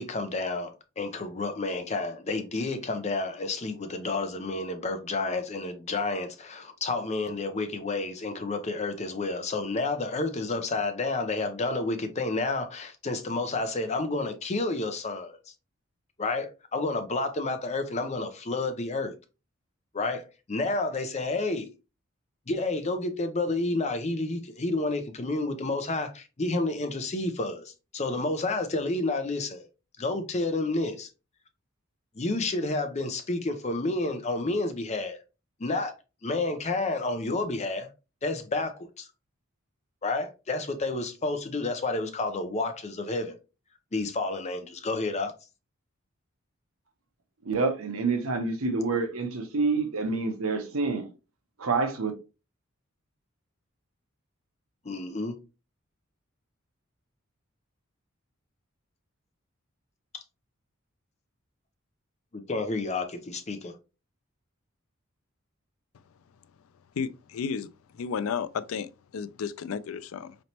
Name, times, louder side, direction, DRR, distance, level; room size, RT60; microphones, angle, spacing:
voice 1, 0.0-15.4 16.2-19.1 19.9-21.7 22.5-29.7 30.0-31.1 32.2-35.2 35.6-35.9 36.2-37.9 38.2-39.1 40.0-43.4 43.9-45.3 54.8-55.4 62.3-63.7, left 2 dB, 35° left, 0.6 m, -30 dB
voice 2, 47.5-51.0 51.6-52.1, right 4 dB, 90° right, 0.9 m, -27 dB
voice 3, 66.9-67.7 67.9-70.4, left 6 dB, 80° left, 0.4 m, -33 dB
4.1 x 3.2 x 2.8 m
head